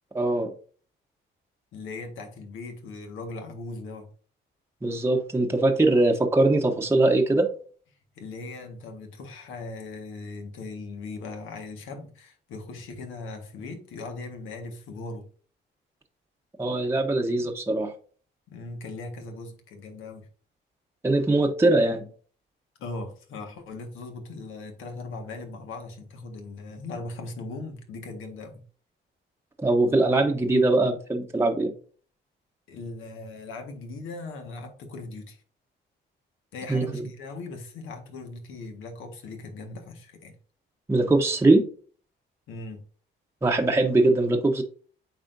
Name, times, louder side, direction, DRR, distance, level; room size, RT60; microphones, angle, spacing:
voice 1, 0.1-0.5 4.8-7.5 16.6-17.9 21.0-22.1 29.6-31.7 36.7-36.8 40.9-41.6 43.4-44.6, right 2 dB, 15° right, 2 dB, 0.9 m, -21 dB
voice 2, 1.7-4.1 8.1-15.3 18.5-20.3 22.8-28.6 32.7-35.4 36.5-40.3 42.5-42.8, left 3 dB, 85° left, 4 dB, 1.6 m, -39 dB
8.5 x 4.3 x 2.6 m, 0.42 s
cardioid pair, 90°, 20 cm